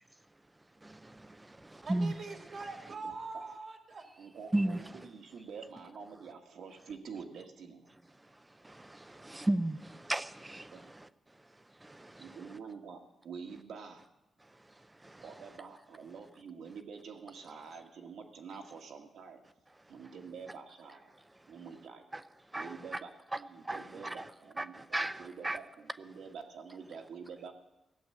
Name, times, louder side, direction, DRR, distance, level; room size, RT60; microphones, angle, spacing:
voice 1, 0.8-2.1 4.5-4.8 8.6-11.1 11.8-12.4 15.0-15.2 22.1-22.2 22.5-22.7 23.6-24.3 24.6-25.6, right 1 dB, 15° right, 0.6 m, -35 dB
voice 2, 1.8-4.1, right 4 dB, 55° right, 1.9 m, -43 dB
voice 3, 4.2-7.9 10.7-10.9 12.2-14.0 15.2-19.4 19.9-21.1 21.5-22.0 22.5-27.5, right 5 dB, 80° right, 2.0 m, -47 dB
16.5 x 8.2 x 9.3 m
wide cardioid pair, 130°, 0 cm